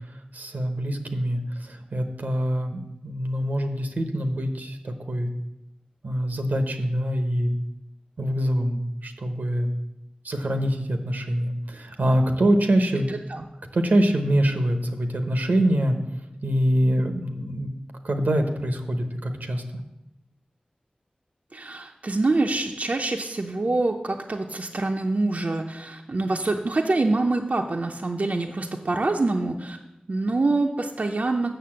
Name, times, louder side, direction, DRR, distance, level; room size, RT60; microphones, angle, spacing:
voice 1, 0.3-5.3 6.0-7.5 8.2-9.7 10.2-13.1 13.7-15.9 16.4-17.7 18.0-19.6, right 1 dB, 90° right, 6 dB, 1.0 m, -24 dB
voice 2, 13.1-13.4 21.5-29.8 30.1-31.6, right 2 dB, 60° right, 3 dB, 0.6 m, -25 dB
6.8 x 6.5 x 7.6 m, 0.93 s
wide cardioid pair, 65°, 3 cm